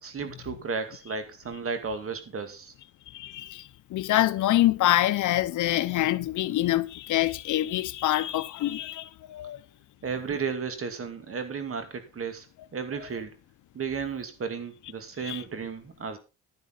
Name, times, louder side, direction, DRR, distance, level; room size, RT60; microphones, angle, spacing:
voice 1, 0.0-2.7 10.0-12.5 12.7-13.3 13.7-16.2, right 5 dB, 45° right, 2.5 m, -34 dB
voice 2, 3.1-9.6 13.0-13.1 15.2-15.4, left 14 dB, 75° left, 0.8 m, -26 dB
10.5 x 10.5 x 4.0 m
cardioid pair, 110°, 30 cm